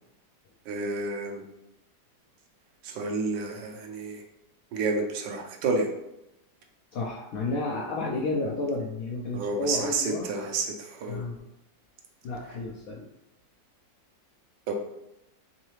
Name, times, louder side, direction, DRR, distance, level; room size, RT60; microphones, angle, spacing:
voice 1, 0.6-1.4 2.8-4.2 4.7-5.9 9.3-11.2 14.7-14.8, right 3 dB, 85° right, 3 dB, 1.4 m, -30 dB
voice 2, 6.9-10.3 11.1-11.4 12.2-13.1, left 2 dB, 75° left, -2 dB, 0.8 m, -31 dB
3.7 x 3.2 x 3.1 m, 0.86 s
omnidirectional pair, 2.0 m